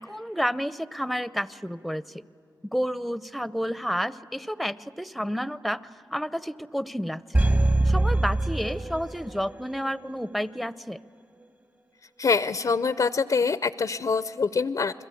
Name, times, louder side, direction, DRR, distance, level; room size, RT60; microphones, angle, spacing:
voice 1, 0.0-2.2 2.7-7.5 7.8-11.0, equal, ahead, 16 dB, 0.6 m, -30 dB
sound 1, 7.3-9.5 9.8-9.9, right 2 dB, 25° right, 1.0 m, -23 dB
voice 2, 12.2-15.1, left 4 dB, 55° left, 14 dB, 0.5 m, -25 dB
29.5 x 21.5 x 8.4 m, 2.6 s
cardioid pair, 50°, 8 cm